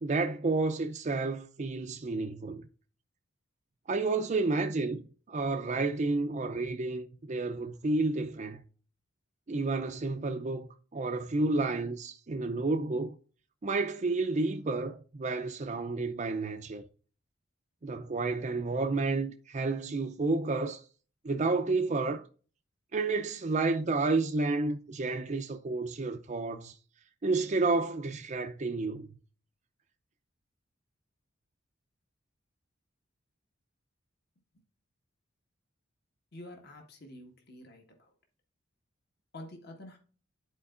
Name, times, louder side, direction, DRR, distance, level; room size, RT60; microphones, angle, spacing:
voice 1, 0.0-2.7 3.9-5.0 5.3-8.6 9.5-13.2 13.6-16.8 17.8-20.8 21.2-22.2 22.9-26.8 27.2-29.1, right 3 dB, 35° right, 0.4 m, -30 dB
voice 2, 36.3-37.8 39.3-40.0, left 1 dB, 50° left, 1.5 m, -47 dB
11.0 x 4.4 x 2.5 m
head